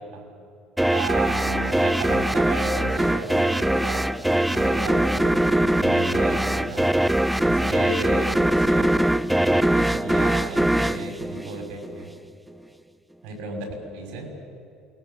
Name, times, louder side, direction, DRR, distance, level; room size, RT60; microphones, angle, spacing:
sound 1, 0.8-12.0, right 1 dB, 5° right, 0.5 m, -22 dB
voice 1, 0.9-4.1 4.4-6.9 7.4-8.8 9.4-12.1 13.2-13.7 13.9-14.3, right 3 dB, 75° right, 2 dB, 6.5 m, -33 dB
28.0 x 20.5 x 7.0 m, 2.4 s
cardioid pair, 135°, 0 cm